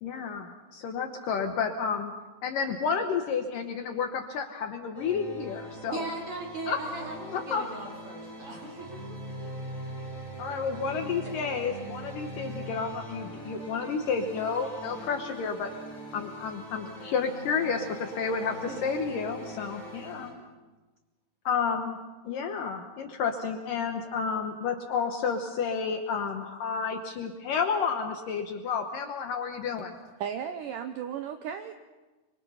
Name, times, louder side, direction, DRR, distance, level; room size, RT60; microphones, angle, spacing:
voice 1, 0.0-2.1 2.4-6.1 6.7-6.8 7.2-7.6 10.4-15.7 16.1-20.3 21.5-22.0 22.3-29.9, left 6 dB, 65° left, 5 dB, 2.3 m, -31 dB
sound 1, 4.9-20.3, right 1 dB, 10° right, 3.4 m, -42 dB
voice 2, 5.9-9.3 14.9-15.1 18.5-19.1 19.4-19.9, right 2 dB, 35° right, -1 dB, 3.8 m, -40 dB
voice 3, 30.2-31.7, right 8 dB, 80° right, 8 dB, 1.9 m, -35 dB
25.0 x 24.0 x 5.7 m, 1.2 s
omnidirectional pair, 4.9 m